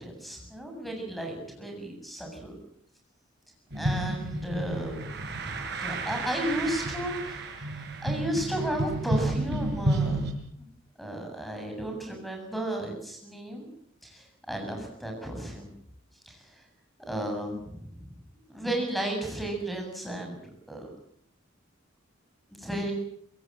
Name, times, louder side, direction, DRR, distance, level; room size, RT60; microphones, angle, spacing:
voice 1, 0.0-2.5 3.7-7.4 8.0-10.3 11.0-13.7 14.0-15.7 16.3-16.4 17.1-17.7 18.5-20.4 20.7-20.9 22.6-22.9, right 1 dB, ahead, 3 dB, 7.7 m, -33 dB
sound 1, 3.7-10.3, right 2 dB, 55° right, 5.2 m, -31 dB
25.0 x 21.5 x 7.6 m, 0.70 s
head